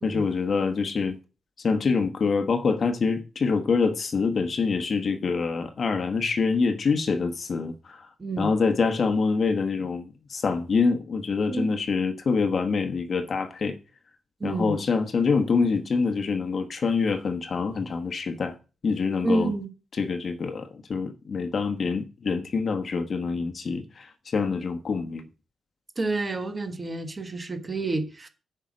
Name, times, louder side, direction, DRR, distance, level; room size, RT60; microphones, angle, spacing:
voice 1, 0.0-1.1 1.6-8.1 8.4-13.8 14.4-18.5 18.8-19.5 20.0-25.2, left 4 dB, 40° left, 1.2 m, -25 dB
voice 2, 8.2-8.5 11.5-11.7 14.4-14.8 19.2-19.7 26.0-28.3, right 2 dB, 20° right, 1.4 m, -29 dB
10.0 x 5.6 x 6.3 m
wide cardioid pair, 155°, 0 cm